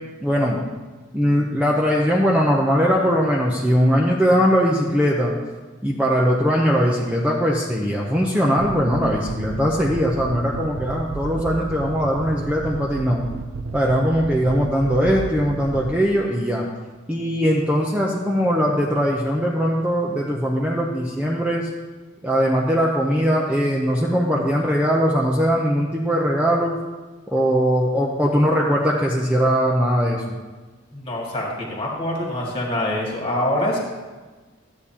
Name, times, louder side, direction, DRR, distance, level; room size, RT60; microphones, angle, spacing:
voice 1, 0.2-0.6 1.1-5.3 5.8-13.2 13.7-16.7 17.1-21.7 22.2-26.8 27.3-30.3, equal, 5° right, -3 dB, 0.6 m, -20 dB
sound 1, 8.6-16.0, right 4 dB, 75° right, 0.5 m, -33 dB
voice 2, 30.9-33.8, left 1 dB, 25° left, -2 dB, 1.9 m, -25 dB
13.0 x 8.3 x 2.9 m, 1.3 s
head